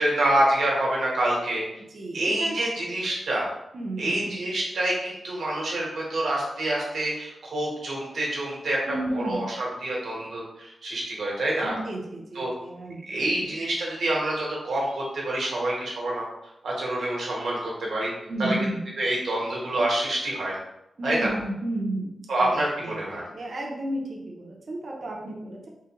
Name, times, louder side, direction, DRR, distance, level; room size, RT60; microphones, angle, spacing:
voice 1, 0.0-1.6 2.1-3.5 4.0-8.8 9.1-11.7 12.3-12.5 13.1-16.2 16.6-18.1 18.4-18.6 19.0-20.5 21.0-21.3 22.3-23.2, right 1 dB, 90° right, -4 dB, 1.1 m, -27 dB
voice 2, 1.9-2.6 3.7-4.4 8.9-9.5 11.6-13.5 18.3-18.9 21.0-22.1 22.4-25.7, right 1 dB, 50° right, -1 dB, 0.6 m, -33 dB
3.8 x 2.7 x 2.9 m, 0.88 s
wide cardioid pair, 155°, 0 cm